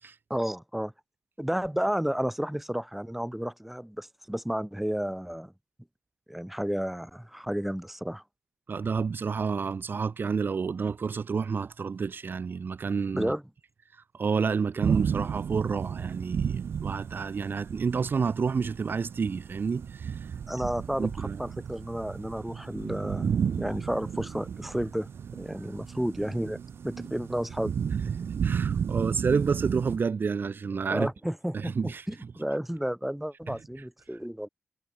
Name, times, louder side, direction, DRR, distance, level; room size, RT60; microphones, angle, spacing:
voice 1, 0.3-0.9 1.4-5.5 6.3-8.2 13.1-13.4 20.5-25.1 25.4-27.7 30.9-34.5, equal, 5° right, 6.7 m, -32 dB
voice 2, 8.7-13.3 13.9-20.3 21.0-21.4 28.4-31.1 31.5-32.1, right 5 dB, 55° right, 2.7 m, -29 dB
sound 1, 14.8-30.0, right 7 dB, 80° right, 2.4 m, -33 dB
cardioid pair, 80°, 4 cm